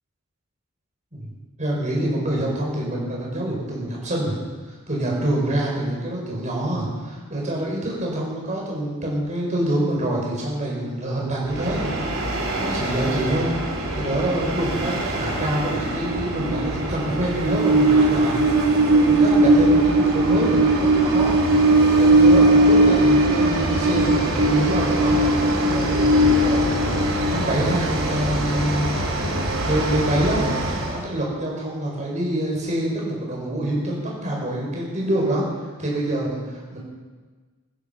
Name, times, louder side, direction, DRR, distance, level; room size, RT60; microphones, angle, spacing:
voice 1, 1.6-4.4 4.9-13.5 13.9-21.4 21.9-25.2 25.6-26.6 27.3-29.2 29.6-30.5 30.9-35.5 35.8-36.8, right 1 dB, 35° right, -3 dB, 5.4 m, -26 dB
Train, 11.5-31.0, right 1 dB, 65° right, 3.7 m, -20 dB
15.5 x 15.0 x 5.4 m, 1.4 s
head